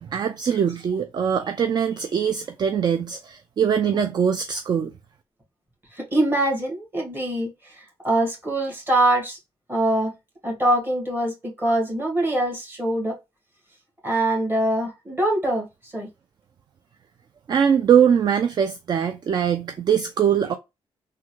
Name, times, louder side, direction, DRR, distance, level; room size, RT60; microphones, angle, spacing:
voice 1, 0.0-4.9 17.5-20.5, right 8 dB, 45° right, 0.4 m, -22 dB
voice 2, 5.9-9.4 9.7-10.1 10.4-13.2 14.0-16.1, right 1 dB, 20° right, 1.6 m, -23 dB
3.5 x 2.2 x 3.0 m
cardioid pair, 100°, 11 cm